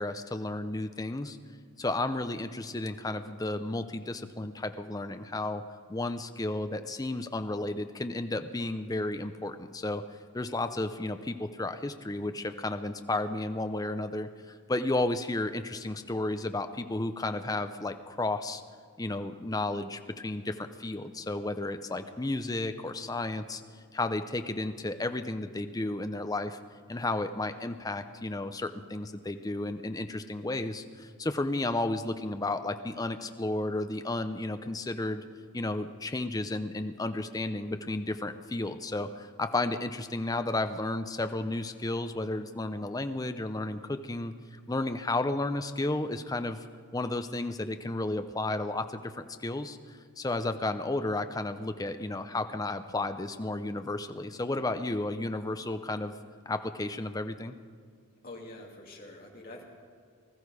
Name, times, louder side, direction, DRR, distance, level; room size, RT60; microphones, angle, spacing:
voice 1, 0.0-1.4 1.8-5.6 5.9-10.0 10.3-18.6 19.0-23.6 23.9-26.6 26.9-35.2 35.5-44.3 44.7-46.7 46.9-49.1 49.4-56.1 56.5-57.5, left 2 dB, 15° left, 9 dB, 0.5 m, -33 dB
voice 2, 58.2-59.6, left 2 dB, 40° left, -2 dB, 2.4 m, -45 dB
19.5 x 13.5 x 4.8 m, 2.2 s
head